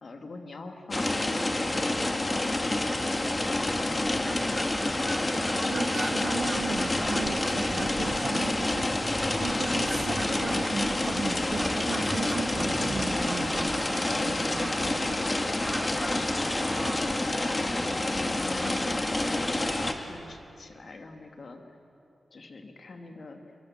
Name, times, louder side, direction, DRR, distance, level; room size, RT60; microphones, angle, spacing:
voice 1, 0.0-6.9 9.3-9.8 12.0-12.3 14.9-16.4 16.6-19.7 20.0-21.6 22.3-23.6, left 3 dB, 60° left, 5 dB, 2.5 m, -44 dB
sound 1, 0.9-19.9, left 2 dB, 30° left, 2.2 m, -28 dB
Fowl, 3.2-20.5, right 2 dB, 30° right, 2.8 m, -42 dB
voice 2, 5.7-15.2, right 5 dB, 85° right, 7 dB, 1.7 m, -37 dB
sound 2, 5.8-13.8, equal, 10° left, 6.0 m, -42 dB
28.5 x 23.5 x 7.6 m, 2.6 s
cardioid pair, 65°, 0 cm